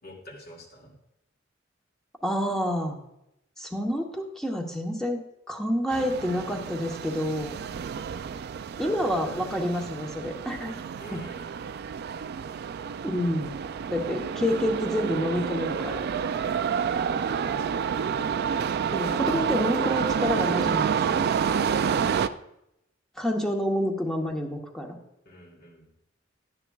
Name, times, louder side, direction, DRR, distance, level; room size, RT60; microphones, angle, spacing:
voice 1, 0.0-0.9 11.0-11.5 16.7-17.5 21.6-22.3 25.2-25.9, equal, 55° left, -1 dB, 2.4 m, -47 dB
voice 2, 2.2-3.0 3.6-7.6 8.8-10.7 13.0-13.6 13.9-16.0 18.9-21.3 23.2-25.0, equal, 5° left, 1 dB, 1.0 m, -28 dB
sound 1, 5.9-22.3, right 7 dB, 55° right, 0.3 m, -29 dB
11.5 x 9.8 x 2.4 m, 0.83 s
head